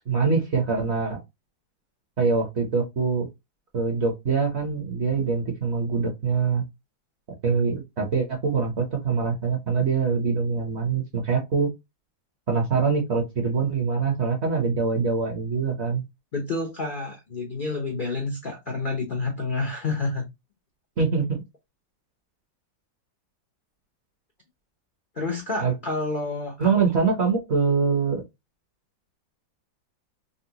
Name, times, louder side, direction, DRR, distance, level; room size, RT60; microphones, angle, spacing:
voice 1, 0.1-1.2 2.2-3.3 3.7-6.6 7.4-11.7 12.5-16.0 21.0-21.3 25.6-25.7 26.6-28.2, right 5 dB, 50° right, 0.8 m, -24 dB
voice 2, 16.3-20.3 25.2-26.7, left 3 dB, 70° left, 0.4 m, -29 dB
4.0 x 2.1 x 2.7 m
omnidirectional pair, 2.0 m